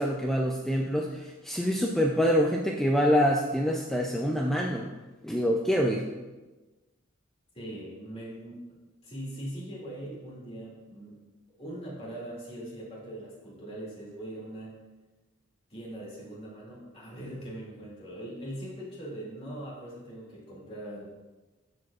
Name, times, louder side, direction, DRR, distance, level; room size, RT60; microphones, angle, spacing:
voice 1, 0.0-4.9 5.2-6.1, equal, ahead, 0 dB, 0.4 m, -26 dB
voice 2, 7.5-11.2 11.5-14.8 15.7-21.1, right 1 dB, 30° left, -5 dB, 2.4 m, -41 dB
12.0 x 4.8 x 2.4 m, 1.2 s
head